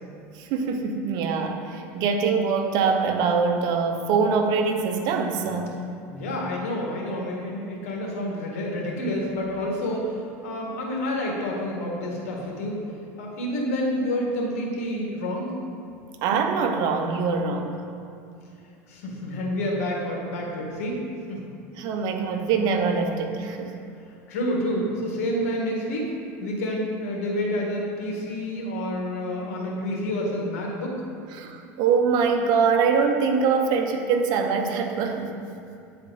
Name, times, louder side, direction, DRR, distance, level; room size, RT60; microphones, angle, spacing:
voice 1, 0.3-5.7 16.2-17.8 21.8-23.8 31.3-35.3, right 5 dB, 60° right, 5 dB, 0.7 m, -23 dB
voice 2, 6.1-12.8 13.2-15.5 18.9-21.0 21.3-21.4 24.3-31.0, left 1 dB, 85° left, -1 dB, 1.4 m, -29 dB
8.8 x 4.3 x 3.9 m, 2.5 s
supercardioid pair, 105°, 8 cm